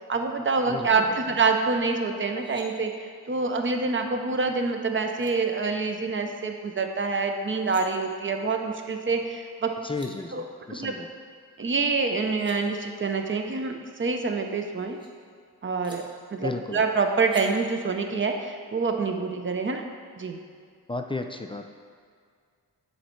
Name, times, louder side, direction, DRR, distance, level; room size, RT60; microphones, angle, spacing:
voice 1, 0.1-9.7 10.3-10.4 10.7-10.9 11.6-15.0 15.6-19.8 20.2-20.4, right 4 dB, 35° right, 5 dB, 0.6 m, -26 dB
voice 2, 0.7-1.0 9.8-11.1 16.4-16.8 20.9-21.8, left 3 dB, 15° left, 5 dB, 0.3 m, -33 dB
sound 1, 2.2-2.7 4.7-4.8 5.1-5.3 7.4-7.8 9.5-9.6 9.8-10.1 12.0-12.6 14.1-15.1 15.8-16.0 17.3-17.5, right 1 dB, 15° right, 1.0 m, -49 dB
7.2 x 3.3 x 4.4 m, 2.2 s
cardioid pair, 70°, 35 cm